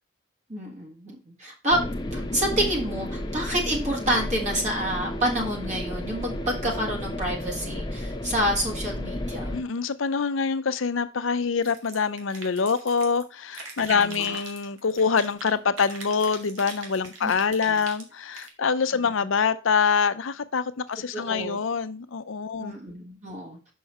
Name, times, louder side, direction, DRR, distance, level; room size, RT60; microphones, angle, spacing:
voice 1, 0.5-1.8 2.1-9.5 13.9-14.4 17.2-17.3 17.7-17.8 18.9-19.1 21.1-21.6 22.6-23.6, equal, 35° right, 1.7 m, -28 dB
sound 1, 1.7-9.6, left 1 dB, 20° left, 0.8 m, -32 dB
voice 2, 9.5-22.8, left 5 dB, 80° left, 0.6 m, -25 dB
sound 2, 11.6-13.2 13.5-15.5 15.8-18.5, right 3 dB, 85° right, 2.1 m, -41 dB
6.6 x 5.5 x 4.3 m
head